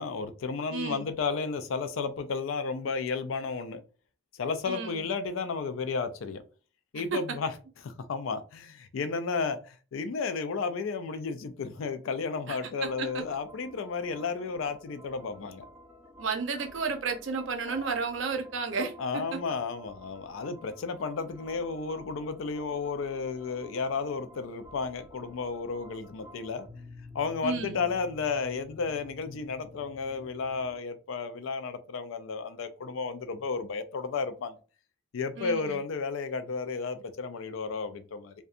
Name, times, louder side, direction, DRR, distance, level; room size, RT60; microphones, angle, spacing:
voice 1, 0.0-3.8 4.4-6.4 6.9-7.5 7.8-15.7 17.7-17.8 19.0-26.7 27.1-34.6 35.1-38.3, left 4 dB, 80° left, 0.4 m, -33 dB
voice 2, 0.7-1.1 4.6-5.0 6.9-7.2 12.5-12.6 13.0-13.1 16.2-18.9 27.4-27.9 35.4-35.8, right 5 dB, 70° right, 0.6 m, -32 dB
sound 1, 12.7-30.8, left 2 dB, 10° right, 0.8 m, -51 dB
2.6 x 2.2 x 2.4 m
head